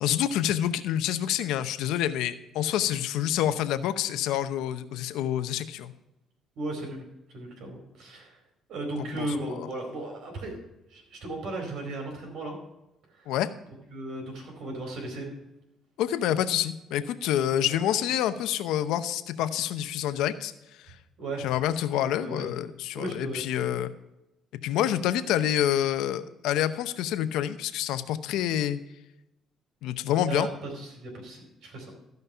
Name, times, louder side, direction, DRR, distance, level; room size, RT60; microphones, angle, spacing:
voice 1, 0.0-5.9 9.0-9.7 13.3-13.5 16.0-20.5 20.8-20.9 21.4-23.9 24.6-28.8 29.8-30.5, left 11 dB, 85° left, 11 dB, 0.7 m, -27 dB
voice 2, 6.6-7.0 7.3-8.4 8.7-10.6 10.9-12.6 13.1-13.3 13.9-15.3 17.5-17.8 21.2-21.5 22.2-22.5 22.9-23.7 30.1-31.9, right 2 dB, 75° right, 2 dB, 4.3 m, -36 dB
14.5 x 5.4 x 5.5 m, 0.92 s
cardioid pair, 95°, 0 cm